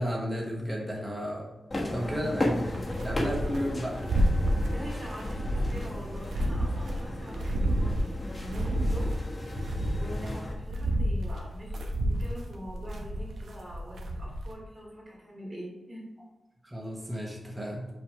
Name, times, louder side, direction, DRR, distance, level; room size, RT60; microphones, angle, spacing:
voice 1, 0.0-1.4 1.9-2.6 3.0-4.0 16.6-17.9, equal, 10° right, -2 dB, 1.1 m, -32 dB
sound 1, 1.7-10.5, left 1 dB, 25° left, 1.2 m, -35 dB
voice 2, 2.0-2.4 4.7-9.1 9.6-16.0, equal, 30° right, -6 dB, 2.2 m, -44 dB
sound 2, 2.7-3.6 3.9-4.8 5.1-7.0 7.3-9.2 9.5-14.5, equal, 80° right, 1.0 m, -29 dB
5.8 x 5.0 x 4.8 m, 1.1 s
wide cardioid pair, 150°, 0 cm